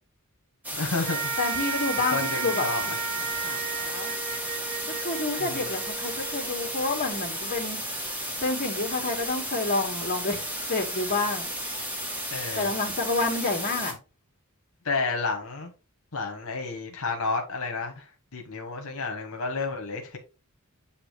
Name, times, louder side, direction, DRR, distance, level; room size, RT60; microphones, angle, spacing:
sound 1, 0.6-13.9, equal, 5° right, 1.6 m, -33 dB
voice 1, 0.7-1.3 2.1-2.9 5.4-5.7 12.3-12.7 14.8-15.7 16.1-18.0 18.3-20.2, left 3 dB, 70° left, 1.3 m, -31 dB
sound 2, 1.0-7.5, right 6 dB, 80° right, 2.1 m, -34 dB
voice 2, 1.4-4.1 4.9-7.8 8.2-10.4 10.7-11.5 12.6-14.0, left 3 dB, 40° left, 2.0 m, -29 dB
8.5 x 2.9 x 4.9 m
head